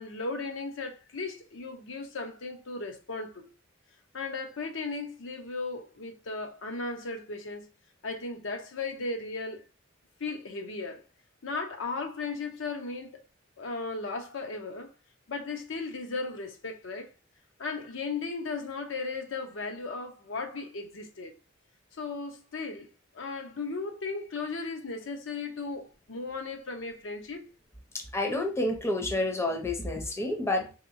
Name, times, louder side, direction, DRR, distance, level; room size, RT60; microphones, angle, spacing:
voice 1, 0.0-3.4 4.1-7.6 8.0-9.6 10.2-11.0 11.4-13.2 13.6-14.9 15.3-17.1 17.6-21.3 22.0-22.9 23.1-27.4, left 3 dB, 75° left, 0.7 m, -36 dB
voice 2, 27.9-30.7, left 2 dB, 15° left, 0.6 m, -29 dB
3.6 x 2.8 x 2.5 m
head